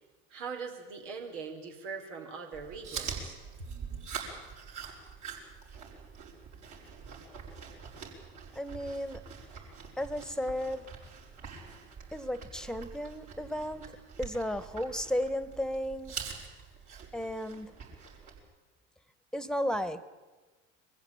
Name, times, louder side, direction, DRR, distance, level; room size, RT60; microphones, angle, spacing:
voice 1, 0.3-3.4, right 5 dB, 75° right, 2 dB, 4.2 m, -41 dB
Chewing mastication, 2.5-18.4, right 6 dB, 55° right, 6.6 m, -44 dB
voice 2, 8.5-9.2 10.0-10.9 12.1-16.2 17.1-17.7 19.3-20.0, equal, ahead, 14 dB, 1.6 m, -34 dB
23.5 x 15.0 x 8.9 m, 1.3 s
hypercardioid pair, 65°, 37 cm